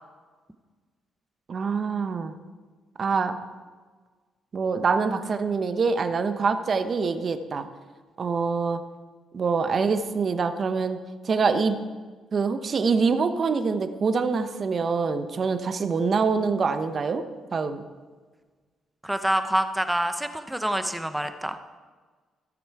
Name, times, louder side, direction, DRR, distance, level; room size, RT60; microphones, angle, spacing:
voice 1, 1.5-2.3 3.0-3.4 4.5-7.7 8.2-8.8 9.3-11.0 11.2-11.8 12.3-17.2 17.5-17.8, right 5 dB, 45° right, 9 dB, 0.9 m, -25 dB
voice 2, 19.0-21.6, right 1 dB, 5° right, 9 dB, 0.8 m, -26 dB
16.5 x 7.0 x 4.7 m, 1.4 s
cardioid pair, 90°, 0 cm